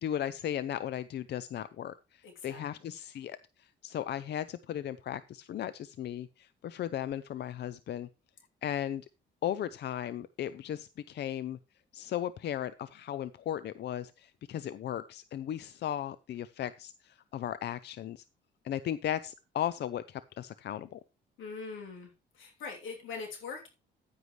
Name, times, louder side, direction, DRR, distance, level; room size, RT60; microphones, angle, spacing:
voice 1, 0.0-8.1 8.6-9.1 9.4-11.6 11.9-18.2 18.6-21.0, left 10 dB, 60° left, 15 dB, 0.5 m, -36 dB
voice 2, 2.2-3.0 21.4-23.7, left 5 dB, 85° left, 2 dB, 3.1 m, -43 dB
9.7 x 9.4 x 3.2 m, 0.29 s
cardioid pair, 90°, 20 cm